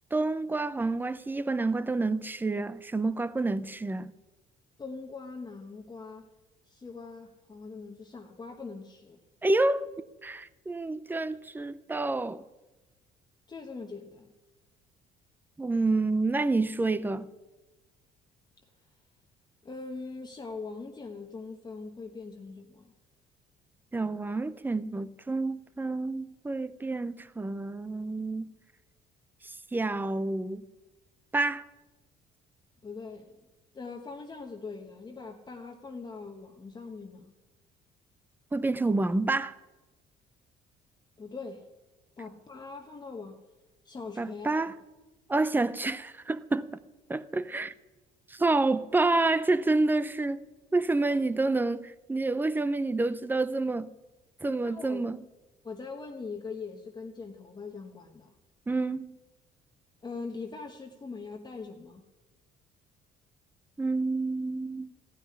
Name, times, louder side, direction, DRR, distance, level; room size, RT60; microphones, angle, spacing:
voice 1, 0.1-4.1 9.4-9.9 10.2-12.4 15.6-17.3 23.9-28.5 29.4-30.6 31.3-31.6 38.5-39.5 44.2-44.8 45.3-46.8 47.1-47.7 48.3-50.4 50.7-53.9 54.4-55.2 58.7-59.2 63.8-64.9, right 3 dB, 10° right, 0.5 m, -28 dB
voice 2, 4.8-6.3 6.7-9.2 13.5-14.3 19.6-22.9 32.8-33.3 33.7-37.3 41.2-41.6 42.2-43.4 43.8-44.7 51.1-51.2 54.6-55.1 55.6-58.3 60.0-62.0, left 4 dB, 25° left, 1.1 m, -42 dB
15.0 x 5.8 x 9.8 m
cardioid pair, 110°, 17 cm